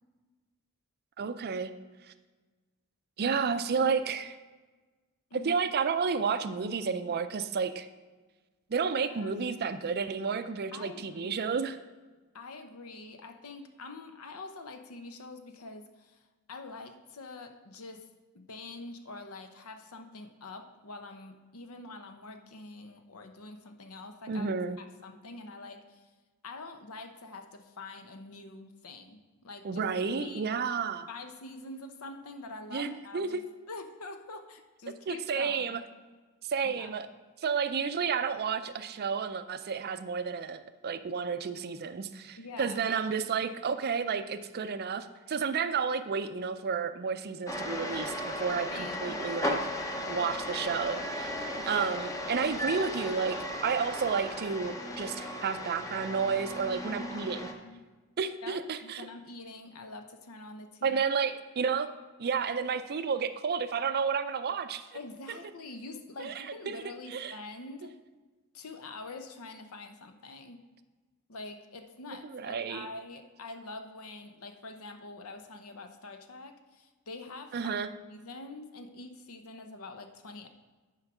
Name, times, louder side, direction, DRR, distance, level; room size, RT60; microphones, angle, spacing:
voice 1, 1.2-1.7 3.2-4.4 5.3-7.9 8.7-11.8 24.3-24.8 29.6-31.1 32.7-33.4 35.1-35.8 36.4-37.1 37.4-49.6 50.1-57.5 58.2-59.1 60.8-61.9 62.2-64.8 65.3-65.4 66.2-66.8 67.1-67.3 72.3-72.9 77.5-77.9, right 5 dB, 45° right, 11 dB, 0.5 m, -31 dB
voice 2, 9.1-9.4 10.7-11.5 12.3-16.2 16.5-18.1 18.3-26.1 26.4-29.9 30.2-30.5 31.1-33.4 33.7-35.8 36.7-37.0 42.4-42.8 48.7-49.2 51.5-51.9 57.0-57.1 57.4-57.8 58.4-61.0 64.9-67.9 68.5-70.6 71.3-77.7 78.1-80.5, left 3 dB, 70° left, 7 dB, 0.8 m, -45 dB
sound 1, 47.5-57.5, left 1 dB, 15° left, 0.8 m, -36 dB
9.7 x 4.6 x 6.0 m, 1.3 s
head